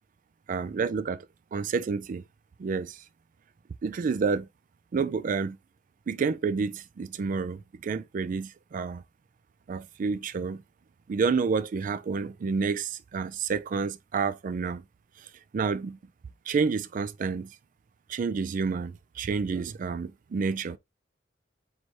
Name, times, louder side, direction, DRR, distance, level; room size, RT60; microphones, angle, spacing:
voice 1, 0.5-1.3 1.5-2.2 2.6-3.0 3.8-4.5 4.9-5.6 6.1-9.0 9.7-10.6 11.1-14.8 15.5-16.0 16.5-17.5 18.1-20.8, right 5 dB, 45° right, 0.3 m, -29 dB
4.5 x 3.2 x 2.7 m
head